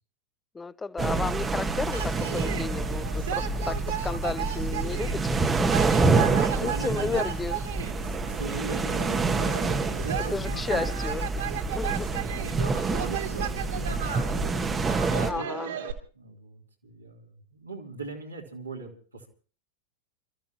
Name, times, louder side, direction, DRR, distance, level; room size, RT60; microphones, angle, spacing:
voice 1, 0.5-6.0 6.6-7.6 10.3-11.4 11.7-12.1 15.2-15.7, left 4 dB, 15° left, 0.7 m, -33 dB
sound 1, 1.0-15.3, right 3 dB, 15° right, 1.3 m, -27 dB
sound 2, 1.9-15.9, right 10 dB, 60° right, 2.8 m, -35 dB
voice 2, 5.9-7.2 8.0-10.9 12.3-14.7 15.0-15.8 16.1-19.3, right 4 dB, 85° right, 3.2 m, -40 dB
29.5 x 14.0 x 3.0 m
figure-of-eight pair, 90°, 0 cm